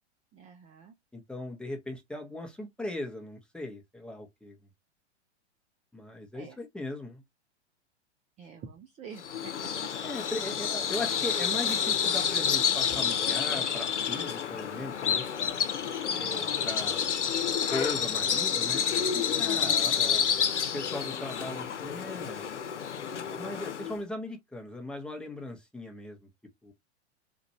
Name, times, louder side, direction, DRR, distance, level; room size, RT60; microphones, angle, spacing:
voice 1, 0.3-0.9 6.3-6.6 8.4-9.5 11.5-11.7 16.1-16.6 19.6-19.8, right 6 dB, 20° right, 0.5 m, -47 dB
voice 2, 1.1-4.6 5.9-7.2 10.0-15.2 16.2-17.0 17.7-20.2 20.7-22.5 23.3-26.2 26.6-26.7, left 2 dB, 5° left, 0.9 m, -38 dB
Bird vocalization bird call bird song, 9.2-24.0, left 7 dB, 80° left, 0.8 m, -29 dB
4.2 x 2.5 x 3.0 m
hypercardioid pair, 105°, 34 cm